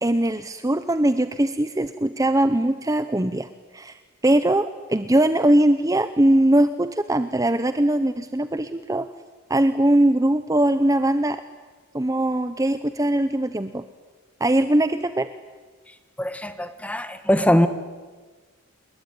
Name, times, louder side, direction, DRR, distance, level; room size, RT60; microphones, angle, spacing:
voice 1, 0.0-9.1 9.5-11.4 11.9-13.8 14.4-15.3, right 1 dB, 15° right, 11 dB, 0.8 m, -21 dB
voice 2, 16.2-17.7, equal, 5° left, 10 dB, 1.4 m, -21 dB
28.0 x 22.0 x 9.4 m, 1.4 s
head